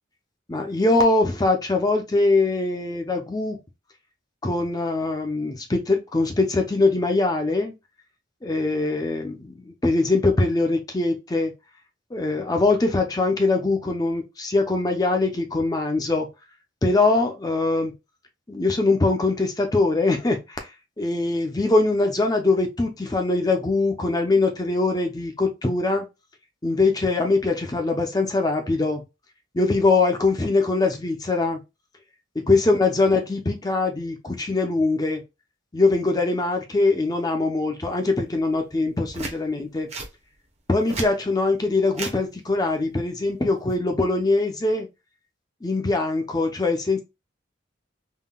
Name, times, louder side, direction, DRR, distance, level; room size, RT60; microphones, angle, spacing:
voice 1, 0.5-3.6 4.4-7.7 8.4-11.5 12.1-16.3 16.8-17.9 18.5-20.7 21.0-26.1 26.6-29.0 29.5-31.6 32.4-35.2 35.7-39.9 40.7-44.9 45.6-47.0, left 3 dB, 20° left, 0.5 m, -22 dB
sound 1, 39.1-39.4 39.9-40.1 40.7-41.1 41.9-42.2 43.5-43.7, right 3 dB, 35° right, 0.7 m, -33 dB
3.6 x 2.2 x 2.2 m
head